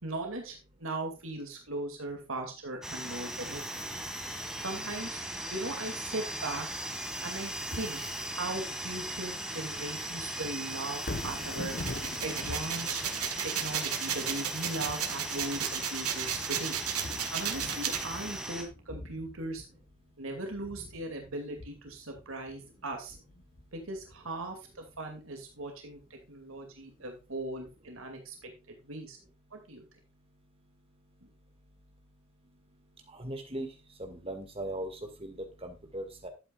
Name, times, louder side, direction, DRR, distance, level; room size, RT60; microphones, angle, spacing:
voice 1, 0.0-3.8 4.6-5.2 5.5-6.7 7.2-8.0 8.3-11.7 12.2-13.0 13.4-16.8 17.3-19.6 20.2-23.2 23.7-29.2 29.5-29.8, right 2 dB, 65° right, 3 dB, 2.5 m, -39 dB
sound 1, 2.8-18.6, right 1 dB, 5° right, 2.1 m, -38 dB
Thunder, 10.9-25.2 25.6-25.7, left 2 dB, 40° left, 1.0 m, -45 dB
sound 2, 11.7-18.0, right 9 dB, 90° right, 1.8 m, -34 dB
voice 2, 33.1-33.7 34.0-36.3, right 1 dB, 25° right, 5 dB, 2.0 m, -39 dB
12.0 x 8.6 x 2.4 m, 0.28 s
head